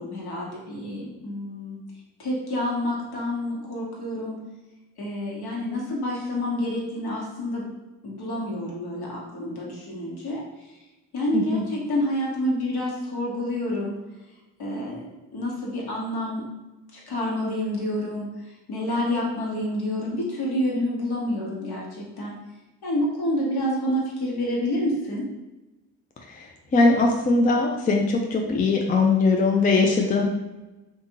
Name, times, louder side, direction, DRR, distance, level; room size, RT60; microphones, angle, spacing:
voice 1, 0.0-1.8 2.2-4.4 5.0-7.7 8.0-10.4 11.1-13.9 14.6-15.0 15.3-16.4 16.9-18.2 18.7-22.3 22.8-25.2, left 1 dB, 50° left, -3 dB, 1.1 m, -28 dB
voice 2, 26.3-30.2, left 3 dB, 20° left, 2 dB, 0.3 m, -21 dB
2.5 x 2.4 x 2.8 m, 1.0 s
hypercardioid pair, 40°, 47 cm